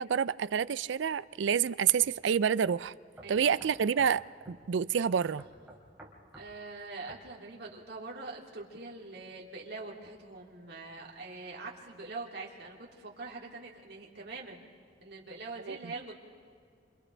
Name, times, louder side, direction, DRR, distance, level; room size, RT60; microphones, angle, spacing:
voice 1, 0.0-2.9 3.3-5.4 15.7-15.8, right 7 dB, 75° right, 18 dB, 0.4 m, -28 dB
sound 1, 2.0-2.1 2.7-2.8 3.2-4.2 4.5-4.6 5.4-6.5 7.1-7.3, right 1 dB, 10° right, 3.2 m, -52 dB
voice 2, 3.2-3.7 6.3-14.6 15.0-16.2, right 3 dB, 60° right, -2 dB, 2.9 m, -44 dB
28.0 x 27.5 x 3.4 m, 2.3 s
head